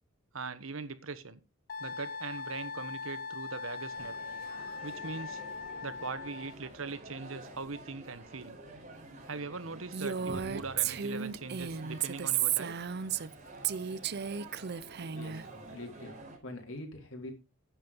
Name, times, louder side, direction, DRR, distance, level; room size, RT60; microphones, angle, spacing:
voice 1, 0.3-1.4 1.8-4.2 4.8-5.4 5.8-8.6 9.2-12.7, right 4 dB, 85° right, 1.3 m, -41 dB
Wind instrument woodwind instrument, 1.7-6.6, left 5 dB, 45° left, 0.6 m, -41 dB
sound 1, 3.9-16.4, right 2 dB, 40° right, 4.8 m, -49 dB
Female speech woman speaking, 9.9-13.3 13.6-15.4, right 9 dB, 55° right, 0.6 m, -33 dB
voice 2, 15.1-16.1 16.4-17.3, left 1 dB, 90° left, 4.6 m, -44 dB
10.5 x 7.9 x 5.4 m
head